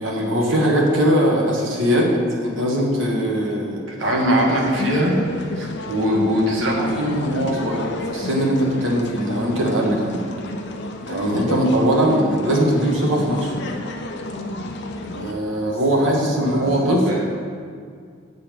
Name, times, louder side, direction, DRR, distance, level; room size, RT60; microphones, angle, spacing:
voice 1, 0.0-2.1 2.4-5.1 5.5-10.3 11.1-13.5 15.1-17.0, equal, 75° right, -1 dB, 1.4 m, -20 dB
sound 1, 4.0-15.3, left 2 dB, 60° left, 0.6 m, -31 dB
voice 2, 15.7-16.1 16.4-17.1, equal, 50° right, -5 dB, 1.1 m, -32 dB
7.6 x 4.1 x 6.8 m, 2.1 s
head